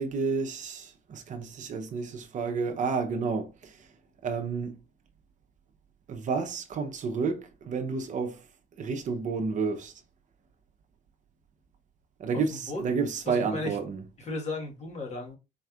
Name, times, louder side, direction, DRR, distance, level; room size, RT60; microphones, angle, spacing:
voice 1, 0.0-3.9 4.2-4.8 6.1-8.4 8.8-9.9 12.2-14.0, right 5 dB, 50° right, 0.8 m, -30 dB
voice 2, 12.5-12.8 13.2-13.8 14.2-15.4, left 2 dB, 40° left, 1.5 m, -35 dB
4.3 x 3.1 x 2.4 m
cardioid pair, 110°, 17 cm